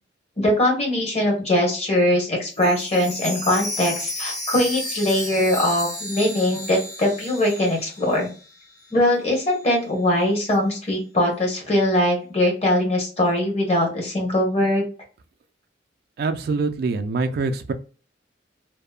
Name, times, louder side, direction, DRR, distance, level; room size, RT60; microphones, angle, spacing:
voice 1, 0.4-8.3 8.9-14.8, left 1 dB, 35° left, 1.1 m, -21 dB
Chime, 2.5-8.5 8.8-8.9 9.5-9.6, left 1 dB, 20° left, 0.8 m, -33 dB
voice 2, 16.2-17.7, right 4 dB, 55° right, 0.3 m, -24 dB
2.8 x 2.0 x 2.3 m
head